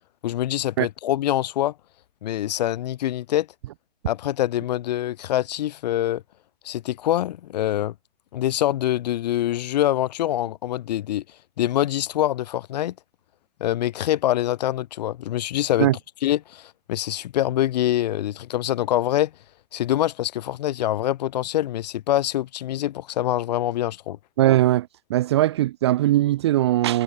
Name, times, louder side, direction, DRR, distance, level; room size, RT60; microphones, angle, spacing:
voice 1, 0.2-1.7 2.2-3.5 4.1-6.2 6.6-7.9 8.3-11.2 11.6-12.9 13.6-15.9 16.2-19.3 19.7-24.2, left 13 dB, 40° left, 4.8 m, -25 dB
voice 2, 24.4-27.0, right 14 dB, 25° right, 0.7 m, -20 dB
hypercardioid pair, 160°, 31 cm